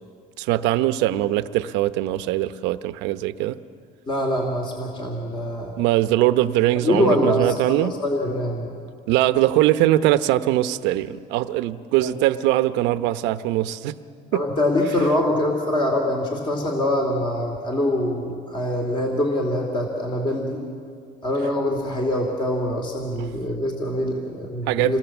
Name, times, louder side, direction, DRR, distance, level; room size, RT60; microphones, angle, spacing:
voice 1, 0.4-3.6 5.8-8.0 9.1-14.0 14.3-14.4 23.2-23.3 24.7-24.9, right 14 dB, 75° right, 12 dB, 0.9 m, -21 dB
voice 2, 4.1-5.7 6.8-8.7 12.0-12.1 14.3-20.7 21.2-25.0, left 1 dB, 25° left, 2 dB, 2.6 m, -24 dB
28.0 x 20.0 x 7.2 m, 2.2 s
cardioid pair, 140°, 19 cm